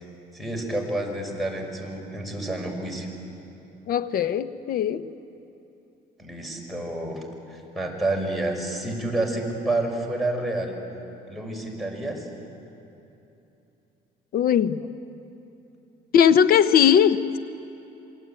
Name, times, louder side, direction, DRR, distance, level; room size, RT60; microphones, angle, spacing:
voice 1, 0.3-3.1 6.2-10.8 11.3-12.3, right 2 dB, ahead, -1 dB, 5.9 m, -29 dB
voice 2, 3.9-5.1 14.3-14.8 16.1-17.4, left 8 dB, 60° left, 12 dB, 1.0 m, -19 dB
27.0 x 22.5 x 9.1 m, 2.9 s
cardioid pair, 110°, 17 cm